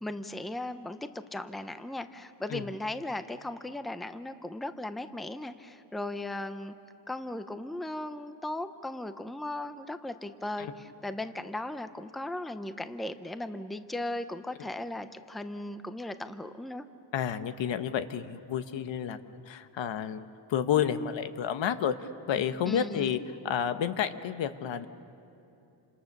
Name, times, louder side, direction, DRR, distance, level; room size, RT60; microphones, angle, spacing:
voice 1, 0.0-6.7 7.1-16.8 22.6-23.2, left 1 dB, ahead, 10 dB, 0.7 m, -37 dB
voice 2, 17.1-21.9 22.3-23.2 23.4-24.9, left 9 dB, 75° left, 10 dB, 1.2 m, -30 dB
28.5 x 27.0 x 6.7 m, 2.8 s
wide cardioid pair, 145°, 44 cm